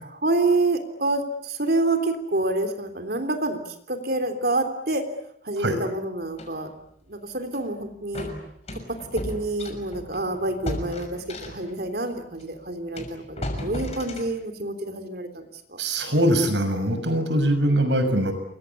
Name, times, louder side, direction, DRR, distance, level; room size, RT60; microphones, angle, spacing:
voice 1, 0.0-3.6 3.9-5.1 5.4-6.7 7.1-8.3 8.7-15.8, right 2 dB, 55° right, 7 dB, 3.4 m, -27 dB
sound 1, 6.4-6.5 7.5-7.7 8.1-11.8 12.4-12.5 13.0-14.3, left 1 dB, 35° left, 6.3 m, -35 dB
voice 2, 15.8-18.3, right 1 dB, 75° right, 9 dB, 6.6 m, -22 dB
29.0 x 23.5 x 8.5 m, 0.71 s
head